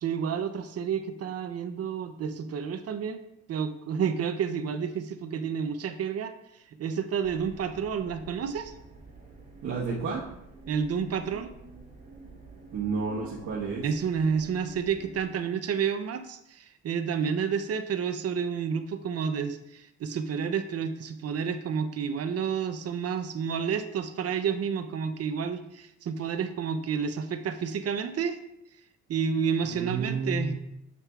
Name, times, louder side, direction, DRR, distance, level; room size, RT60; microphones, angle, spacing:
voice 1, 0.0-3.2 3.5-6.3 6.8-8.7 10.7-11.5 13.8-28.4 29.1-30.5, right 7 dB, 55° right, 9 dB, 0.7 m, -30 dB
sound 1, 7.2-15.2, right 3 dB, 30° right, 2.6 m, -49 dB
voice 2, 9.6-10.2 12.7-13.8 29.6-30.5, right 4 dB, 70° right, -7 dB, 1.3 m, -31 dB
7.5 x 6.7 x 2.4 m, 0.80 s
cardioid pair, 90°, 30 cm